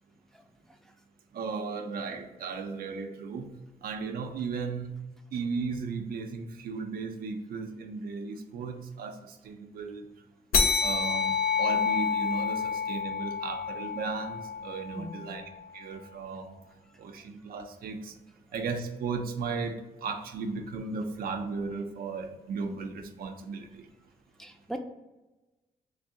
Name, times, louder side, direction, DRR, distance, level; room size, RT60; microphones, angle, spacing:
voice 1, 1.3-3.5 3.8-5.0 5.3-10.1 10.8-16.6 17.0-18.1 18.5-23.9, right 4 dB, 75° right, 5 dB, 0.5 m, -36 dB
sound 1, 10.5-15.5, left 5 dB, 75° left, 0.5 m, -28 dB
voice 2, 14.9-15.3 24.4-24.8, equal, 5° left, 4 dB, 0.5 m, -39 dB
3.2 x 2.6 x 3.7 m, 1.1 s
cardioid pair, 65°, 16 cm